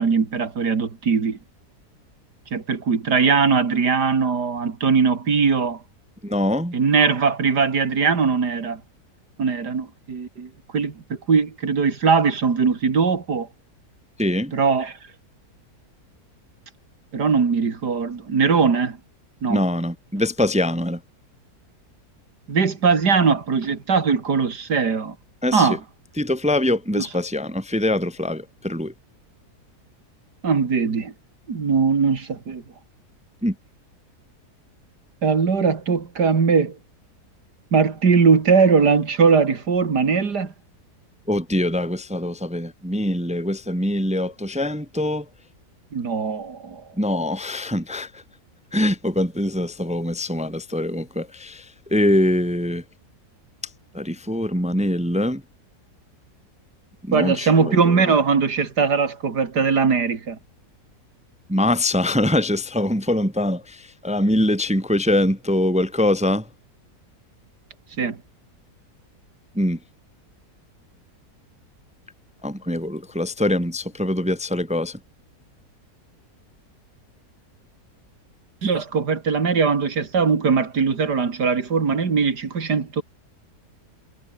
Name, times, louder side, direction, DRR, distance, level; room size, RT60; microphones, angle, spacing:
voice 1, 0.0-1.4 2.5-5.8 6.7-8.8 9.4-13.5 14.5-15.0 17.1-19.0 19.4-19.6 22.5-25.1 25.5-25.8 26.9-27.1 30.4-31.1 31.5-32.6 35.2-36.8 37.7-40.5 45.9-46.8 57.1-60.4 68.0-68.2 78.6-83.0, right 5 dB, 90° right, 3.0 m, -20 dB
voice 2, 6.2-6.8 14.2-14.5 19.5-21.0 25.4-25.7 26.2-28.9 33.4-33.5 41.3-45.3 47.0-48.2 48.7-52.8 53.9-55.4 57.0-58.1 61.5-66.5 69.5-69.8 72.4-75.0, left 1 dB, 5° right, 0.9 m, -23 dB
omnidirectional pair, 1.7 m